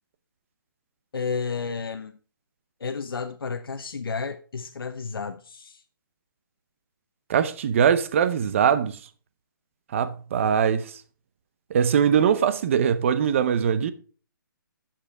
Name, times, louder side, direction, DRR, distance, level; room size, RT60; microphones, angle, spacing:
voice 1, 1.1-2.2 2.8-5.8, left 5 dB, 90° left, 0.8 m, -32 dB
voice 2, 7.3-9.0 9.9-10.8 11.7-13.9, right 8 dB, 35° right, 0.8 m, -21 dB
11.5 x 7.6 x 3.7 m
hypercardioid pair, 165°, 12 cm